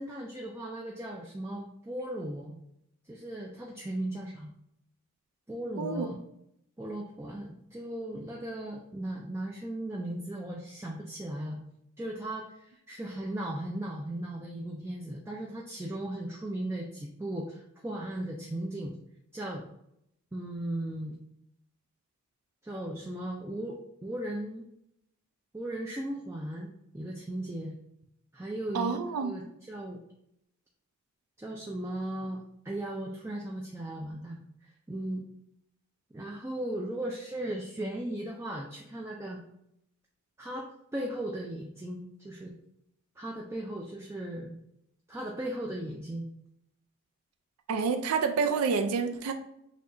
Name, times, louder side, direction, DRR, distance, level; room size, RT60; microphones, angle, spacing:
voice 1, 0.0-2.6 3.1-4.5 5.5-6.2 6.8-11.6 12.0-19.0 19.3-19.6 20.3-21.1 22.6-24.6 25.5-26.7 26.9-27.8 28.3-28.9 29.2-29.4 29.7-30.0 31.4-35.3 36.1-39.4 40.4-42.5 43.2-44.6 45.1-46.3, right 1 dB, 10° right, -1 dB, 0.3 m, -37 dB
voice 2, 5.8-6.1 28.7-29.3 47.7-49.3, right 5 dB, 85° right, 6 dB, 0.4 m, -28 dB
6.1 x 2.8 x 2.5 m, 0.78 s
head